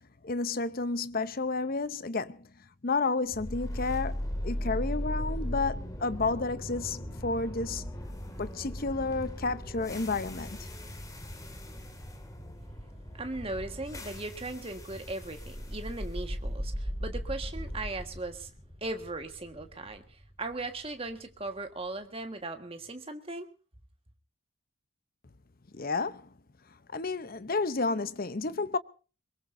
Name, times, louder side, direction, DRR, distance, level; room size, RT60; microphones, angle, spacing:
voice 1, 0.2-2.5 2.8-7.9 8.4-10.6 25.7-26.3 26.9-28.8, left 3 dB, 40° left, 0.7 m, -31 dB
sound 1, 3.3-21.4, equal, 15° left, 2.2 m, -38 dB
voice 2, 13.1-18.5 18.8-23.5, right 2 dB, 25° right, 1.6 m, -38 dB
23.0 x 21.5 x 2.7 m
head